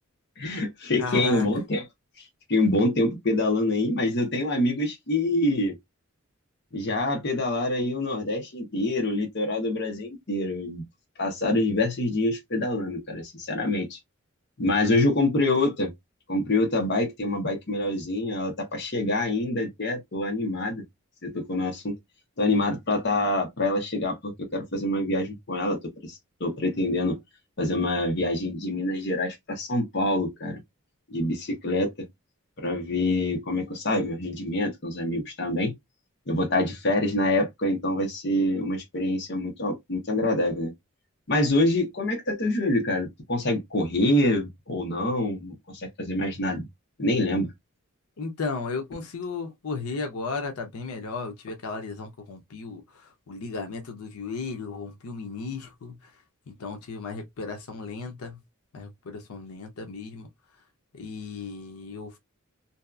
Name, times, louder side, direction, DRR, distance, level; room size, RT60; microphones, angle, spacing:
voice 1, 0.4-1.8 2.5-5.8 6.7-10.8 11.2-14.0 14.6-15.9 16.3-20.8 21.2-22.0 22.4-27.2 27.6-30.6 31.1-32.1 32.6-35.7 36.3-40.7 41.3-46.7 47.0-47.5, left 2 dB, 50° left, 0.8 m, -26 dB
voice 2, 1.0-1.5 48.2-56.1 56.5-58.4 58.7-60.3 60.9-62.2, left 4 dB, 90° left, 0.6 m, -35 dB
2.7 x 2.3 x 2.2 m
head